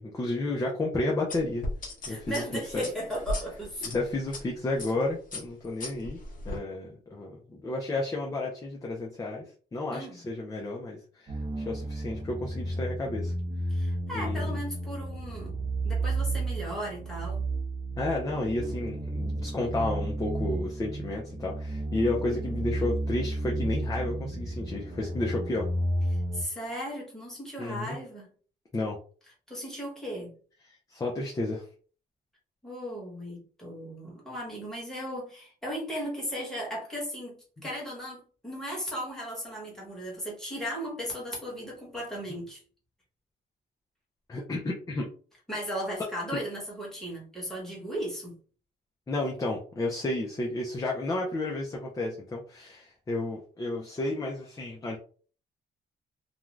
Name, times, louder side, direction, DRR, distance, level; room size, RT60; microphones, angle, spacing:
voice 1, 0.0-1.7 2.1-2.4 2.7-2.9 3.8-6.2 6.4-13.3 14.1-14.6 18.0-25.7 27.6-28.0 28.7-29.0 30.7-31.7 44.3-45.1 49.1-55.0, left 2 dB, 20° left, -1 dB, 0.5 m, -32 dB
sound 1, 1.3-4.4 4.8-5.0 5.3-6.6, left 2 dB, 45° left, 0.9 m, -36 dB
voice 2, 2.0-3.9 9.9-10.2 13.7-15.5 15.8-17.4 26.1-28.3 29.5-30.3 32.6-37.3 37.6-42.6 45.5-48.3, equal, ahead, -4 dB, 1.2 m, -36 dB
sound 2, 11.3-26.4, right 1 dB, 30° right, 0.7 m, -32 dB
2.5 x 2.3 x 3.1 m, 0.41 s
wide cardioid pair, 160°, 19 cm